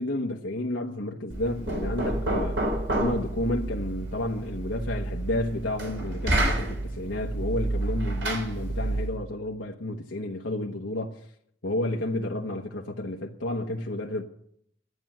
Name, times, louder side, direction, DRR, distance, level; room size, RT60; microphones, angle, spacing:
voice 1, 0.0-2.6 2.9-11.2 11.6-14.2, left 1 dB, 90° left, 1.1 m, -31 dB
Knock, 1.3-9.2, right 1 dB, 80° right, 3.7 m, -29 dB
13.0 x 9.1 x 7.8 m
head